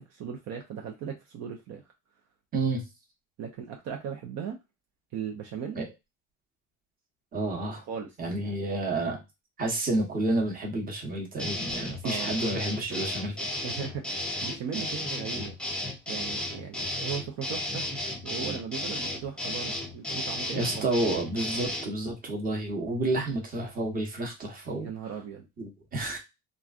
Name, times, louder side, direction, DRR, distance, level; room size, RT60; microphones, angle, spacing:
voice 1, 0.0-1.8 3.4-4.6 5.1-5.8 7.9-8.1 8.4-8.6 12.0-12.4 13.6-15.5 16.1-17.8 18.2-20.9 24.8-25.5, right 7 dB, 55° right, 1 dB, 0.7 m, -37 dB
voice 2, 2.5-2.9 5.7-5.8 7.3-7.8 8.2-9.2 9.6-13.3 20.5-24.9 25.6-26.2, right 2 dB, 25° right, 0 dB, 1.0 m, -30 dB
sound 1, 11.4-21.9, left 1 dB, 5° left, 0.6 m, -33 dB
3.1 x 2.4 x 2.4 m, 0.23 s
cardioid pair, 135°, 32 cm